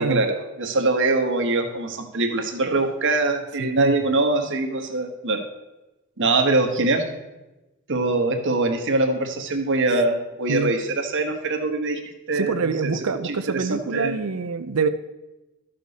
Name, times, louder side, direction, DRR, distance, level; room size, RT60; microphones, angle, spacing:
voice 1, 0.0-5.5 6.2-7.1 7.9-12.0 12.3-12.9 13.2-14.2, right 2 dB, 60° right, 5 dB, 1.2 m, -23 dB
voice 2, 3.6-3.9 10.5-10.8 12.3-14.9, right 4 dB, 80° right, 10 dB, 0.6 m, -25 dB
12.5 x 6.7 x 4.1 m, 1.0 s
head